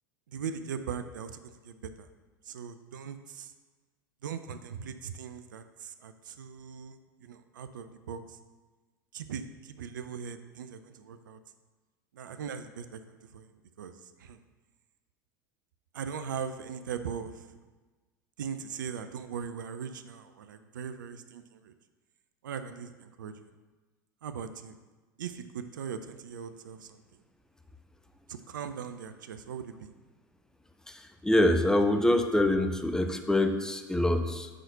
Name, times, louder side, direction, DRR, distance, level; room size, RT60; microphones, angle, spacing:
voice 1, 0.3-2.1 2.4-3.5 4.2-8.4 9.1-11.4 12.1-13.5 13.8-14.4 15.9-17.6 18.4-21.7 22.4-23.3 24.2-24.8 25.2-27.0 28.3-29.9, right 7 dB, 70° right, 10 dB, 0.5 m, -40 dB
voice 2, 30.9-34.5, left 1 dB, 5° left, 6 dB, 0.6 m, -25 dB
5.8 x 5.0 x 6.4 m, 1.3 s
figure-of-eight pair, 80°, 11 cm